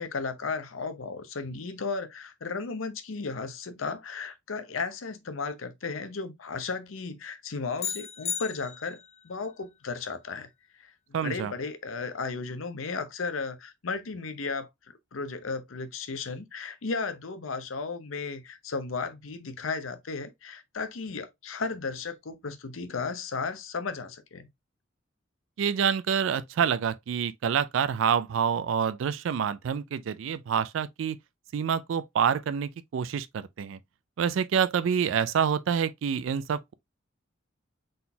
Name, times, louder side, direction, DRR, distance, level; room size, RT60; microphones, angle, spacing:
voice 1, 0.0-9.0 9.2-10.5 10.8-10.9 11.2-24.5, left 4 dB, 85° left, 0.8 m, -35 dB
sound 1, 7.8-9.2, left 8 dB, 30° left, 0.4 m, -35 dB
voice 2, 11.1-11.5 25.6-31.2 31.5-33.8 34.2-36.7, right 7 dB, 70° right, 0.3 m, -27 dB
4.0 x 3.9 x 2.7 m
head